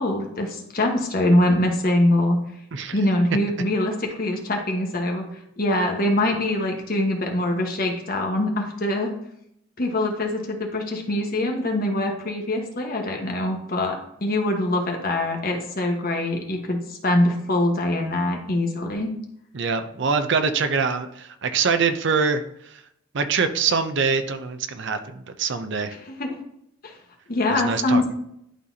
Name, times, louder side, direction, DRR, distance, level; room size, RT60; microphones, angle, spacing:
voice 1, 0.0-2.4 2.9-5.3 5.6-9.1 9.8-19.1 26.2-26.4 26.8-26.9 27.3-28.1, left 1 dB, 45° left, 2 dB, 1.2 m, -23 dB
voice 2, 19.5-22.8 23.1-25.9 27.5-28.0, right 5 dB, 60° right, 9 dB, 0.6 m, -24 dB
11.0 x 4.1 x 2.8 m, 0.75 s
head